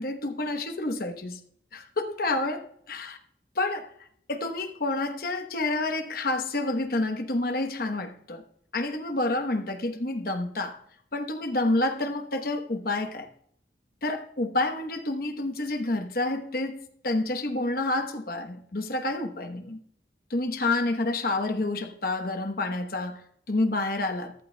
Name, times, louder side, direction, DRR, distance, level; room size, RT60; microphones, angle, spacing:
voice 1, 0.0-1.4 1.7-3.2 3.6-3.9 4.3-8.4 8.7-10.8 11.1-13.3 14.0-19.8 20.3-24.3, left 2 dB, 55° left, 1.0 m, -29 dB
14.5 x 12.0 x 2.2 m
head